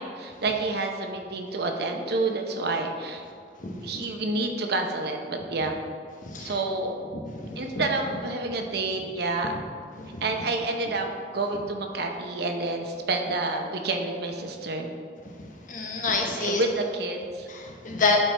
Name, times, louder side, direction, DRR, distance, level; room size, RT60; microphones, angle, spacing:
voice 1, 0.0-3.2 3.8-5.7 6.4-7.0 7.6-9.6 10.2-11.1 11.3-14.9 16.2-17.5, right 2 dB, 60° right, 3 dB, 0.8 m, -29 dB
voice 2, 3.6-4.0 6.2-6.5 7.1-7.8 10.0-10.2 15.4-16.6 17.5-18.2, left 3 dB, 50° left, 1 dB, 1.0 m, -28 dB
11.5 x 4.6 x 3.4 m, 2.2 s
head